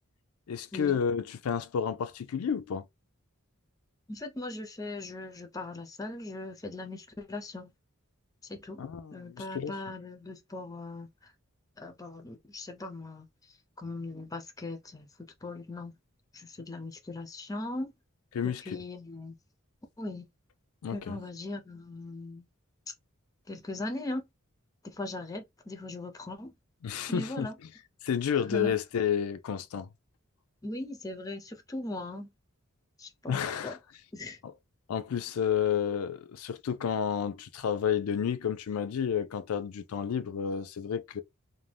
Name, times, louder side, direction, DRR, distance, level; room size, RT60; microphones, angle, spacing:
voice 1, 0.5-2.8 8.8-9.7 18.3-18.6 20.8-21.2 26.8-27.5 28.0-29.9 33.3-33.8 34.4-34.5 34.9-41.2, left 7 dB, 85° left, 0.4 m, -31 dB
voice 2, 4.1-7.7 8.4-8.8 9.1-11.1 11.8-13.3 13.8-15.9 16.3-17.9 18.6-19.3 20.0-20.3 20.9-22.5 23.5-24.2 24.8-26.5 27.1-27.6 28.4-28.8 30.6-32.3 33.0-33.4 33.6-33.8 34.1-34.4, left 2 dB, 15° left, 0.5 m, -39 dB
2.6 x 2.1 x 3.3 m
head